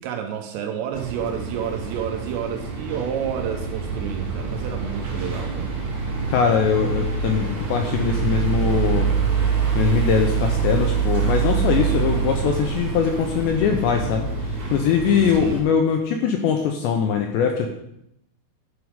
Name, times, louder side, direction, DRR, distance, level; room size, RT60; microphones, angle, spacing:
voice 1, 0.0-5.7 15.4-15.6, right 8 dB, 80° right, 4 dB, 2.6 m, -30 dB
sound 1, 0.9-15.6, right 6 dB, 45° right, 2.9 m, -25 dB
voice 2, 6.3-9.1 9.8-17.7, left 7 dB, 80° left, 3 dB, 2.6 m, -22 dB
11.5 x 9.6 x 3.6 m, 0.77 s
omnidirectional pair, 5.9 m